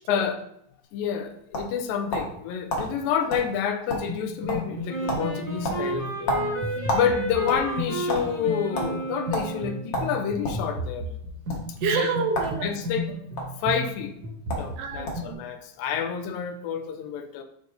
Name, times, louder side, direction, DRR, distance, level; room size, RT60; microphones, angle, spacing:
voice 1, 0.1-0.4 0.9-6.4 6.9-11.1 11.9-12.1 12.6-13.1 13.6-14.1 14.6-17.4, left 7 dB, 85° left, 7 dB, 2.3 m, -28 dB
sound 1, 1.0-2.4 2.7-2.9 3.3-3.5 3.7-4.2 4.5-4.8 5.1-5.3 5.6-7.1 7.4-8.2 8.7-8.9 9.3-9.5 9.9-10.6 11.4-11.6 12.3-12.6 12.9-13.4 14.2-14.3 14.5-14.7 15.1-15.3, left 1 dB, 55° left, 1.6 m, -29 dB
sound 2, 4.1-15.3, equal, 55° right, 2.8 m, -34 dB
Wind instrument woodwind instrument, 4.9-9.9, right 1 dB, 25° left, 0.6 m, -32 dB
voice 2, 6.3-7.0 11.8-12.8 14.8-15.4, right 5 dB, 80° right, 5 dB, 2.0 m, -29 dB
11.5 x 4.0 x 2.6 m, 0.69 s
omnidirectional pair, 4.1 m